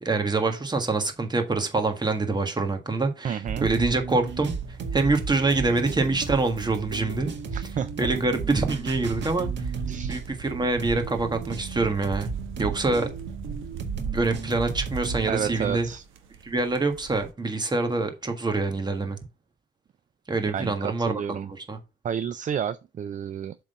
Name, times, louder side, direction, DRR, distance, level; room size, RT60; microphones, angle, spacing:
voice 1, 0.0-4.5 4.9-7.3 8.0-9.5 10.1-12.3 12.6-13.1 14.1-15.9 16.4-19.2 20.3-21.8, right 3 dB, 20° right, 1.6 m, -25 dB
voice 2, 3.2-3.7 7.5-7.9 9.8-10.2 15.3-16.0 20.5-21.5 22.0-23.5, right 8 dB, 40° right, 0.4 m, -30 dB
sound 1, 3.4-16.0, right 5 dB, 65° right, 1.7 m, -34 dB
sound 2, 4.6-17.3, right 6 dB, 90° right, 1.0 m, -42 dB
7.4 x 3.8 x 5.4 m
cardioid pair, 90°, 20 cm